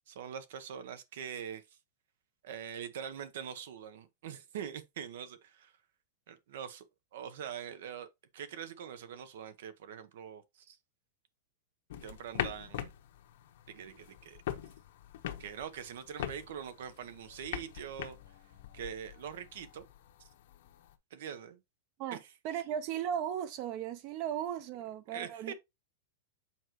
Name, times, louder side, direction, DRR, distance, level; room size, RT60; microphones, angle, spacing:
voice 1, 0.1-1.6 2.4-5.7 6.3-6.9 7.1-8.1 8.3-10.8 12.0-12.9 13.7-14.4 15.4-18.2 18.7-19.8 20.2-20.3 21.1-21.6 22.1-22.2 22.5-22.6 25.1-25.5, right 8 dB, 60° right, 0.9 m, -43 dB
sound 1, 11.9-20.9, left 11 dB, 60° left, 1.0 m, -43 dB
voice 2, 22.4-25.5, right 9 dB, 35° right, 0.8 m, -36 dB
7.2 x 4.6 x 3.0 m
supercardioid pair, 170°, 0 cm